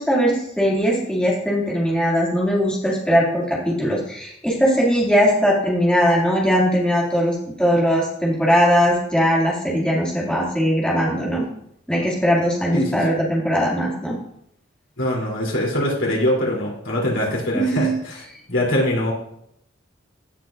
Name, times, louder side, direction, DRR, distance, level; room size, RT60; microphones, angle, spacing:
voice 1, 0.0-11.4 11.9-14.2 17.5-17.9, equal, 5° left, -5 dB, 2.4 m, -20 dB
voice 2, 15.0-18.2 18.5-19.1, left 1 dB, 90° left, -3 dB, 3.2 m, -22 dB
16.5 x 5.9 x 2.6 m, 0.72 s
head